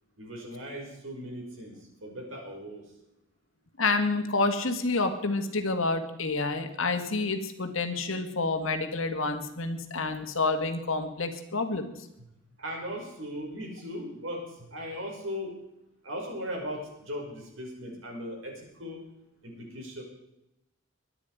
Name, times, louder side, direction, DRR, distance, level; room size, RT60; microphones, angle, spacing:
voice 1, 0.2-2.9 12.6-15.5 16.0-19.0 19.4-20.0, equal, 70° right, 0 dB, 5.7 m, -38 dB
voice 2, 3.8-11.9, left 3 dB, 75° left, 6 dB, 1.8 m, -28 dB
23.0 x 9.9 x 5.0 m, 0.87 s
head